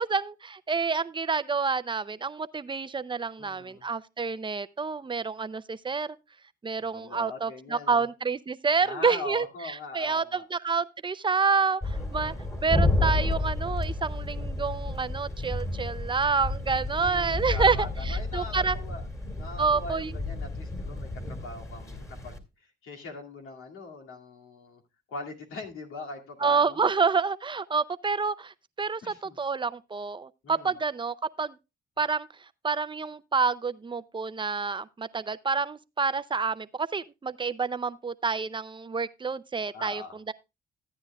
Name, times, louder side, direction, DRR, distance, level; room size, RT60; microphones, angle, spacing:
voice 1, 0.0-6.2 6.6-12.3 12.6-18.8 19.6-20.1 26.4-28.5 28.8-29.0 29.4-31.5 32.0-32.3 32.6-40.3, right 5 dB, 25° right, 0.6 m, -28 dB
voice 2, 3.4-3.8 6.8-8.1 8.8-10.4 11.9-12.4 16.9-19.0 19.4-24.8 25.1-26.8 29.0-29.4 30.4-30.8 39.7-40.2, left 3 dB, 85° left, 2.3 m, -42 dB
sound 1, 11.8-22.4, left 2 dB, 15° left, 2.1 m, -31 dB
14.0 x 9.4 x 2.3 m
cardioid pair, 75°, 21 cm